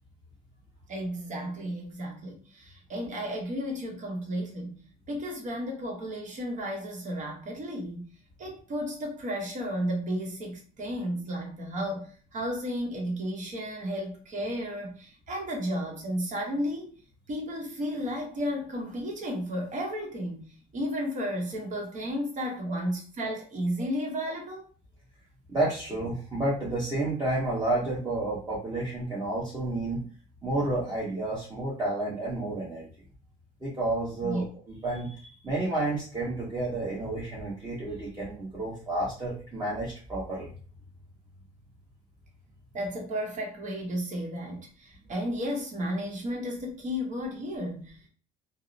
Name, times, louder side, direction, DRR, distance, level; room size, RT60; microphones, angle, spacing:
voice 1, 0.9-4.8 5.1-8.1 8.4-16.9 17.3-24.7 34.2-34.5 42.7-48.1, equal, 45° right, 1.0 m, -33 dB
voice 2, 25.5-30.0 30.4-32.9 33.6-40.5, right 2 dB, 20° right, 1.0 m, -30 dB
2.6 x 2.0 x 2.5 m
cardioid pair, 110°, 17 cm